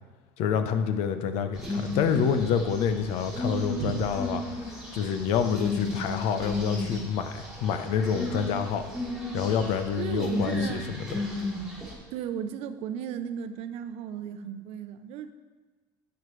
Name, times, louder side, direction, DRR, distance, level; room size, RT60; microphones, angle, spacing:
voice 1, 0.4-8.8 9.3-10.8, left 7 dB, 65° left, 9 dB, 0.8 m, -27 dB
sound 1, 1.5-11.9, left 1 dB, 5° right, 2.5 m, -34 dB
voice 2, 10.0-10.9 12.1-15.3, right 9 dB, 60° right, 10 dB, 0.7 m, -35 dB
10.5 x 8.1 x 3.2 m, 1.3 s
supercardioid pair, 130°, 12 cm